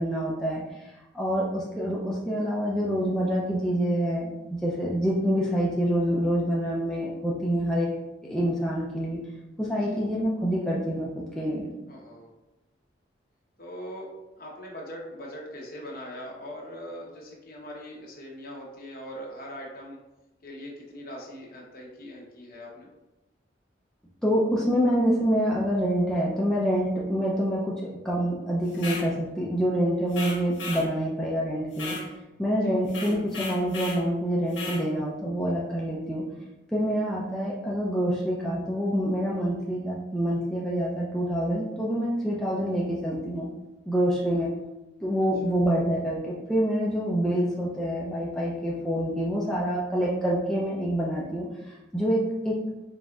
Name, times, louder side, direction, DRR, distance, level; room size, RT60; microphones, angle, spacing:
voice 1, 0.0-7.9 8.2-9.2 9.6-11.7 24.2-27.8 28.0-32.0 32.4-36.2 36.7-43.5 43.9-44.5 45.0-52.6, equal, 5° left, -6 dB, 0.4 m, -26 dB
voice 2, 11.9-12.3 13.6-14.1 14.4-20.0 20.4-22.9 32.6-32.8, equal, 50° left, -2 dB, 0.9 m, -41 dB
sound 1, 28.7-29.1 30.1-30.9 31.7-32.1 32.9-34.0 34.5-34.8, left 3 dB, 75° left, 1.4 m, -35 dB
4.0 x 3.7 x 2.3 m, 0.98 s
head